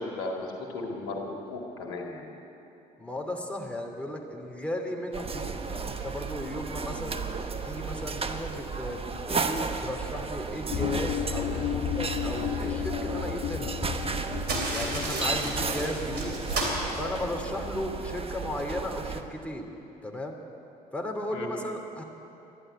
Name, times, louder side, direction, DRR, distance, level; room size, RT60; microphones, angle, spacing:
voice 1, 0.0-2.3 15.2-15.5 21.3-21.5, left 2 dB, 80° left, 1 dB, 2.0 m, -36 dB
voice 2, 3.0-7.2 7.6-13.8 14.7-16.4 17.0-19.7 20.0-20.4 20.9-22.0, left 1 dB, 5° left, 1 dB, 2.6 m, -35 dB
sound 1, 5.1-19.2, right 4 dB, 30° right, 1.1 m, -34 dB
sound 2, 10.7-18.2, left 12 dB, 50° left, 0.6 m, -34 dB
sound 3, 14.4-17.8, right 2 dB, 55° right, 3.2 m, -33 dB
13.5 x 11.0 x 9.4 m, 2.9 s
hypercardioid pair, 55°, 19 cm